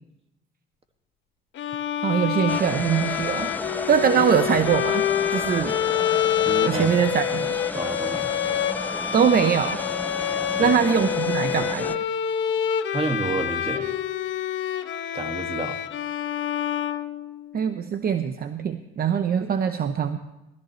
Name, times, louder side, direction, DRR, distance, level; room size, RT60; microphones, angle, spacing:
Bowed string instrument, 1.5-17.6, left 9 dB, 70° left, 0.9 m, -27 dB
voice 1, 2.0-3.5 3.9-5.1 5.3-5.8 6.6-7.6 9.1-9.8 10.6-12.0 17.5-20.2, right 7 dB, 50° right, 9 dB, 0.9 m, -22 dB
sound 1, 2.5-12.0, left 2 dB, 10° left, 0.5 m, -33 dB
voice 2, 6.5-7.1 7.7-8.3 10.6-10.7 12.9-13.9 15.1-15.8, right 3 dB, 30° right, 5 dB, 2.0 m, -29 dB
17.5 x 14.5 x 3.2 m, 0.96 s
cardioid pair, 90°, 20 cm